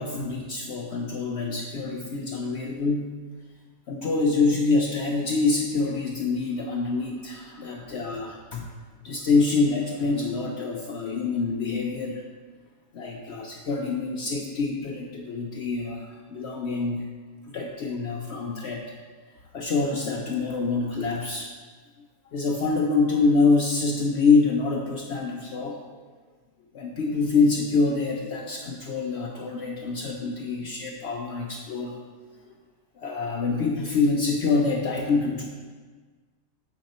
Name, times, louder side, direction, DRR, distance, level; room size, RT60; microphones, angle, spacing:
voice 1, 0.0-3.1 3.9-8.6 9.0-12.2 12.9-17.1 17.5-18.8 19.5-21.5 22.2-25.8 26.7-32.0 33.0-35.4, left 4 dB, 60° left, 0 dB, 0.8 m, -25 dB
7.2 x 5.2 x 4.2 m, 1.5 s
omnidirectional pair, 1.5 m